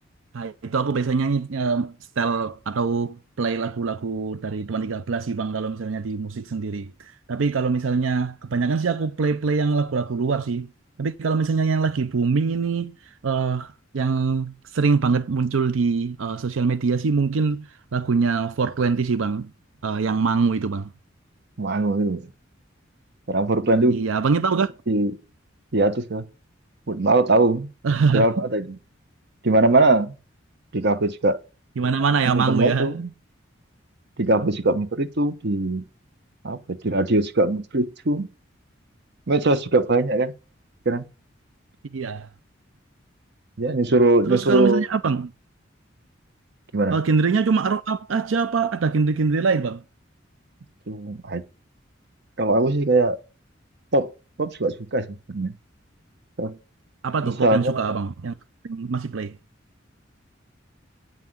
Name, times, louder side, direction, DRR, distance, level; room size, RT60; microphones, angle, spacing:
voice 1, 0.3-10.7 11.0-12.9 13.2-19.5 19.8-20.9 23.9-24.7 27.8-28.3 31.8-32.9 41.9-42.3 44.2-45.3 46.9-49.8 57.0-58.3 58.6-59.4, right 5 dB, 90° right, 0.5 m, -23 dB
voice 2, 21.6-22.3 23.3-24.0 24.9-25.2 25.7-26.2 26.9-27.7 28.1-28.8 29.4-30.1 30.7-31.4 32.2-33.1 34.2-35.8 36.4-38.3 39.3-40.3 40.8-41.0 43.6-44.8 46.7-47.0 50.9-51.4 52.4-53.2 53.9-54.1 54.4-55.5 56.4-56.6 57.2-58.0, right 2 dB, 60° right, 1.0 m, -21 dB
9.2 x 5.7 x 7.7 m
head